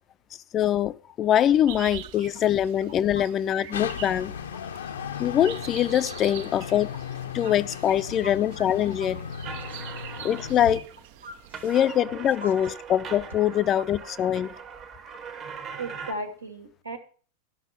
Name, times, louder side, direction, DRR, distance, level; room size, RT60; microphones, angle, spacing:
voice 1, 0.5-4.3 5.2-6.9 7.3-9.2 10.2-10.8 11.6-14.5, left 10 dB, 30° left, 0.5 m, -23 dB
sound 1, 1.7-12.0, right 12 dB, 50° right, 0.6 m, -45 dB
sound 2, 3.7-10.8, left 7 dB, 65° left, 0.7 m, -36 dB
voice 2, 8.2-8.7 9.3-9.4 9.7-9.9 11.2-11.8 12.4-12.5 15.8-17.0, right 1 dB, 80° right, 1.9 m, -38 dB
sound 3, 9.4-10.9 11.3-16.1, right 6 dB, 30° right, 1.2 m, -41 dB
12.5 x 6.1 x 7.1 m
figure-of-eight pair, 90°, 0 cm